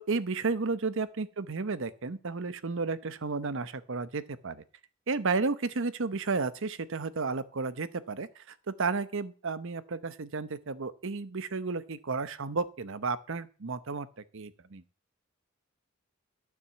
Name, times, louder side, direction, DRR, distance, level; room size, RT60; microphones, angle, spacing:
voice 1, 0.1-4.6 5.1-14.1 14.3-14.8, right 4 dB, 60° right, 15 dB, 0.8 m, -32 dB
12.5 x 6.1 x 7.2 m, 0.38 s
head